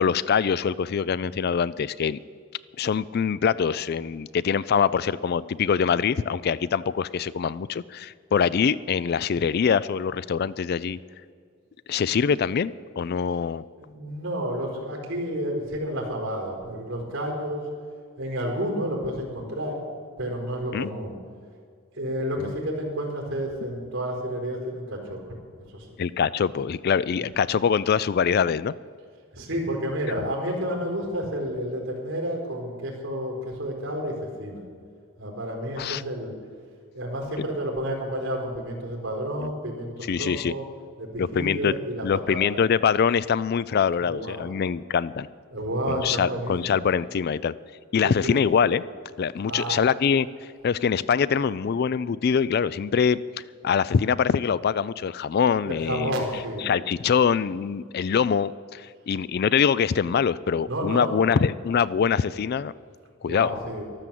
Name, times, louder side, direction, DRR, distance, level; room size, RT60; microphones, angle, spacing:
voice 1, 0.0-2.2 2.8-11.0 11.9-13.6 20.7-20.9 22.4-22.5 26.0-28.7 35.8-36.0 39.4-39.5 40.1-40.5 41.2-41.8 42.0-45.3 45.9-47.5 47.9-48.8 49.2-50.3 50.6-53.2 53.6-56.2 56.6-62.7 63.2-63.5, left 6 dB, 50° left, 18 dB, 0.3 m, -24 dB
voice 2, 13.8-17.6 18.2-19.8 20.2-21.1 22.0-25.2 25.7-25.9 29.3-34.6 35.2-36.3 36.9-40.6 41.0-42.6 44.0-44.5 45.5-46.8 48.0-48.4 49.5-49.9 55.6-56.7 60.7-61.4 63.2-63.8, equal, 60° right, -1 dB, 4.6 m, -30 dB
13.0 x 12.5 x 7.6 m, 2.1 s
head